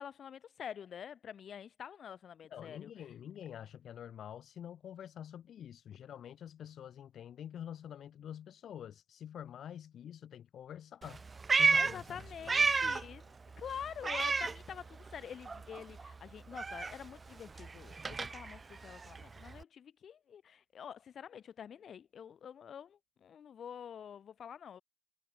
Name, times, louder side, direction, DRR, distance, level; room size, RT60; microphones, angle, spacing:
voice 1, 0.0-2.9 11.8-24.8, left 8 dB, 65° left, 5.1 m, -47 dB
voice 2, 2.5-11.2 11.5-13.0, left 9 dB, 85° left, 4.9 m, -47 dB
Meow, 11.0-13.2 13.5-15.2 15.4-19.6, right 4 dB, 30° right, 1.2 m, -33 dB
wide cardioid pair, 135°, 0 cm